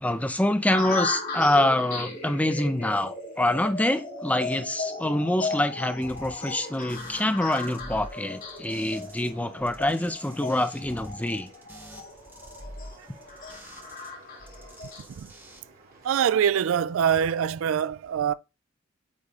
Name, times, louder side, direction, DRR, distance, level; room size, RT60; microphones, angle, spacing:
voice 1, 0.0-11.5, left 1 dB, 5° left, 0.5 m, -26 dB
sound 1, 0.7-15.0, left 3 dB, 45° left, 2.5 m, -36 dB
sound 2, 6.0-9.3 9.6-14.1 14.4-15.6, right 1 dB, 10° right, 1.0 m, -47 dB
sound 3, 6.1-16.1, right 2 dB, 45° right, 2.2 m, -55 dB
voice 2, 16.0-18.3, right 8 dB, 90° right, 0.3 m, -24 dB
8.3 x 3.4 x 3.5 m
head